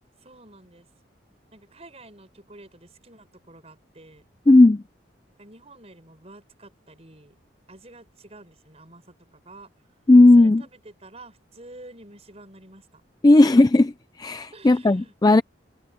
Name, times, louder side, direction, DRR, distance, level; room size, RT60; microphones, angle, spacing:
voice 1, 0.2-0.9 1.5-4.3 5.4-7.3 7.7-9.7 10.4-13.0 13.3-13.5 14.5-15.1, right 2 dB, 35° right, 6.6 m, -48 dB
voice 2, 4.5-4.8 10.1-10.6 13.2-13.9 14.2-15.4, left 2 dB, 20° left, 0.4 m, -14 dB
head